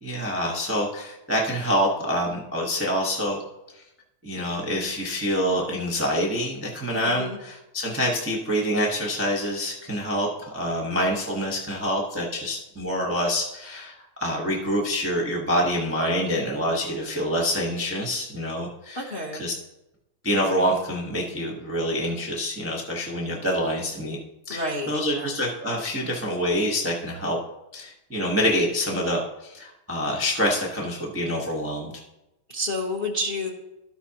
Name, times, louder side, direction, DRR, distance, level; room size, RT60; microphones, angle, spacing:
voice 1, 0.0-3.4 3.7-3.8 4.2-19.0 19.4-19.5 20.2-24.2 24.5-27.4 27.7-31.9, equal, 15° right, -2 dB, 0.6 m, -26 dB
voice 2, 7.0-7.4 18.9-19.5 24.5-25.3 32.5-33.5, left 1 dB, 40° left, -3 dB, 0.8 m, -30 dB
13.5 x 6.0 x 2.9 m, 0.93 s
omnidirectional pair, 2.4 m